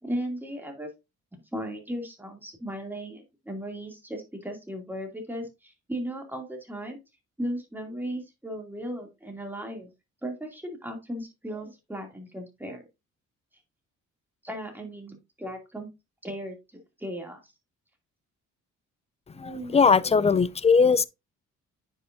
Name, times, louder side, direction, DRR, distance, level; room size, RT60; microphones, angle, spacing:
voice 1, 0.0-0.9 1.5-7.0 7.4-9.9 10.2-12.9 14.4-15.9 16.2-16.6 17.0-17.5 19.3-20.2, equal, 5° right, 2.4 m, -36 dB
voice 2, 19.7-21.0, left 5 dB, 20° left, 0.4 m, -19 dB
9.5 x 5.5 x 2.6 m
cardioid pair, 90°, 30 cm